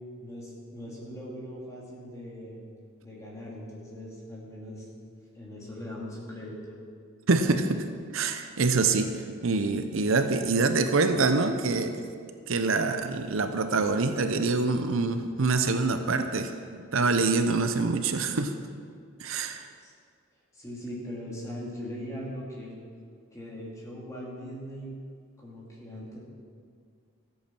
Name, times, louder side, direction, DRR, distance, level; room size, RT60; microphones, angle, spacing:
voice 1, 0.2-2.6 3.0-4.9 5.3-6.7 19.8-19.9 20.5-22.8 23.3-25.0 25.4-26.2, equal, 15° left, -5 dB, 2.6 m, -40 dB
voice 2, 7.3-7.8 8.1-9.1 9.4-12.0 12.5-18.5 19.2-19.7, right 3 dB, 70° right, 8 dB, 0.7 m, -25 dB
13.5 x 8.6 x 6.0 m, 2.1 s
head